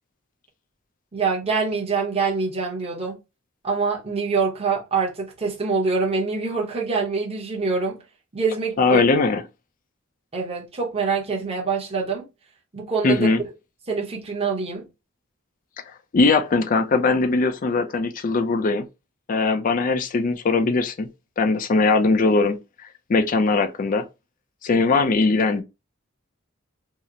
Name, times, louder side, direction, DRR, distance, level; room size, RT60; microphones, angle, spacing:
voice 1, 1.1-3.2 3.6-8.0 8.3-9.0 10.3-12.3 12.7-13.3 13.9-14.9, right 4 dB, 30° right, 0.8 m, -25 dB
voice 2, 8.8-9.4 13.0-13.4 16.1-18.9 19.3-21.1 21.4-22.6 23.1-24.0 24.6-25.6, left 3 dB, 40° left, 0.4 m, -20 dB
2.8 x 2.0 x 3.7 m
head